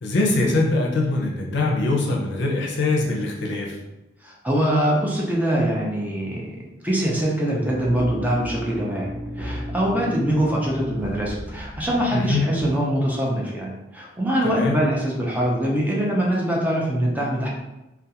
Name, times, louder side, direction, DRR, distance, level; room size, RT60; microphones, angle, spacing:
voice 1, 0.0-3.8 12.1-12.4 14.4-14.8, left 2 dB, 65° left, -1 dB, 0.5 m, -22 dB
voice 2, 4.2-6.5 6.8-9.1 9.4-17.5, right 1 dB, 10° right, -3 dB, 0.4 m, -23 dB
sound 1, 7.5-12.7, equal, 45° right, 0.7 m, -34 dB
2.4 x 2.3 x 2.7 m, 0.97 s
head